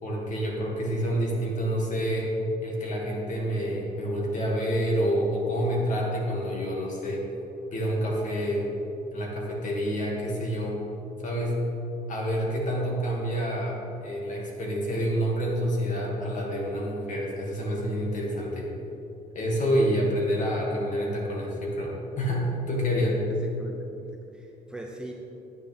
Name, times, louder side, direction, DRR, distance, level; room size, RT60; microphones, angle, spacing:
voice 1, 0.0-2.3 2.6-7.2 7.7-8.6 9.1-10.8 11.2-11.6 12.1-18.7 19.3-23.2, equal, 45° left, -2 dB, 2.4 m, -28 dB
voice 2, 23.4-25.1, right 1 dB, 5° right, -1 dB, 0.8 m, -42 dB
9.6 x 9.4 x 3.5 m, 2.9 s
cardioid pair, 110°, 17 cm